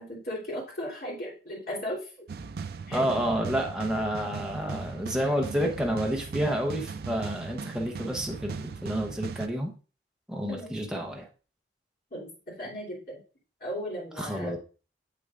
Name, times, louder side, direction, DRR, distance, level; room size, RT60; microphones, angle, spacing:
voice 1, 0.0-2.2 2.9-3.0 10.5-10.7 12.1-13.2 13.6-14.6, equal, 55° left, -5 dB, 3.0 m, -36 dB
sound 1, 2.3-9.5, right 5 dB, 55° right, 0.4 m, -38 dB
voice 2, 2.9-9.7 10.3-11.3 14.2-14.6, equal, 5° right, 0 dB, 0.8 m, -29 dB
7.7 x 6.6 x 2.5 m, 0.36 s
head